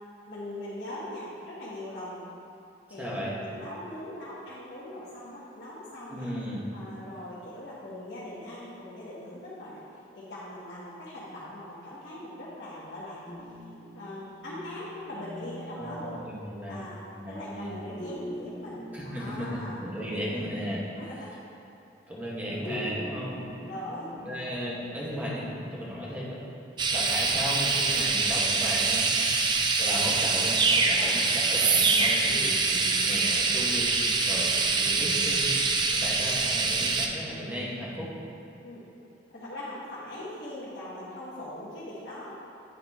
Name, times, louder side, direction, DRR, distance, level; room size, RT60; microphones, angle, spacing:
voice 1, 0.3-2.2 2.9-6.3 6.7-13.2 13.9-16.3 16.7-17.0 17.3-19.8 21.0-21.3 23.6-24.4 31.0-31.1 34.0-34.2 38.6-38.9 39.3-42.3, left 1 dB, 80° left, -10 dB, 1.3 m, -41 dB
voice 2, 3.0-3.3 6.1-6.6 15.8-16.8 17.2-17.7 18.9-20.8 22.1-23.4 24.2-26.4 26.9-29.1 29.8-35.5 35.9-38.1, equal, 10° right, -7 dB, 1.2 m, -35 dB
sound 1, 13.3-16.4 18.0-20.9 22.7-24.8, equal, 35° left, 1.2 m, -43 dB
sound 2, 26.8-37.1, right 4 dB, 25° right, 0.4 m, -25 dB
9.3 x 4.0 x 3.6 m, 2.7 s
head